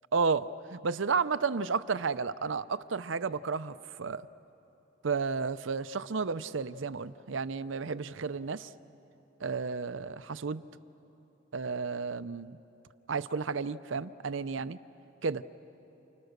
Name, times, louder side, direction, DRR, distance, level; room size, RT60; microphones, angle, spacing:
voice 1, 0.1-4.2 5.0-8.7 9.4-10.6 11.5-12.6 13.1-14.8 15.2-15.4, right 5 dB, 70° right, 13 dB, 0.6 m, -32 dB
29.5 x 29.5 x 6.7 m, 3.0 s
head